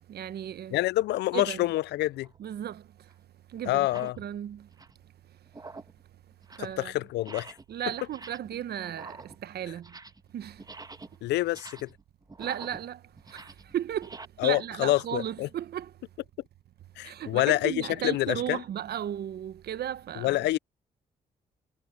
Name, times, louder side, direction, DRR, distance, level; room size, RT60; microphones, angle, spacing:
voice 1, 0.1-0.8 1.3-1.7 2.4-2.8 3.5-4.7 6.6-6.9 7.7-9.9 10.3-10.6 12.4-13.0 13.3-13.4 13.7-14.1 14.4-15.9 17.0-20.4, right 10 dB, 70° right, 1.2 m, -35 dB
voice 2, 0.7-2.3 3.7-4.2 6.6-7.6 11.2-11.9 14.4-15.5 17.0-18.6 20.2-20.6, left 17 dB, 80° left, 0.4 m, -27 dB
sound 1, 2.2-2.4 3.1-3.2 3.7-4.2 4.6-5.1 5.5-6.0 6.3-6.8 7.2-7.7 8.0-8.6 8.9-10.3 10.6-14.3, right 3 dB, 20° right, 1.3 m, -47 dB
supercardioid pair, 60°, 17 cm